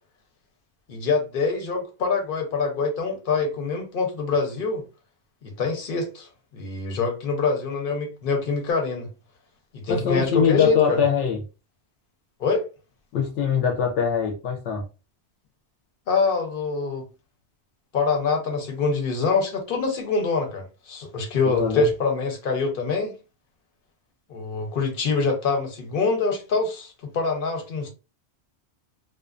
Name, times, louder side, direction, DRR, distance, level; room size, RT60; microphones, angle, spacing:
voice 1, 0.9-4.8 5.4-6.3 6.5-9.1 9.7-11.0 12.4-12.6 16.1-17.1 17.9-23.1 24.3-27.9, left 4 dB, 55° left, 0.8 m, -25 dB
voice 2, 9.9-11.4 13.1-14.8 21.5-21.9, left 7 dB, 85° left, 0.9 m, -22 dB
2.4 x 2.2 x 2.4 m
omnidirectional pair, 1.2 m